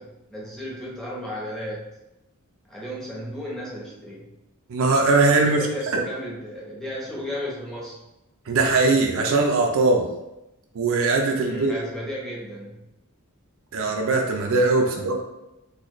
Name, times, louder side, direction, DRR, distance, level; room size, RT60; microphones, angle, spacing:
voice 1, 0.0-1.9 2.6-4.3 5.4-8.0 11.4-12.8 14.8-15.0, equal, ahead, -5 dB, 0.8 m, -34 dB
voice 2, 4.7-5.6 8.5-10.1 10.7-11.7 13.7-15.2, right 3 dB, 65° right, 2 dB, 0.5 m, -20 dB
3.9 x 2.3 x 3.1 m, 0.93 s
head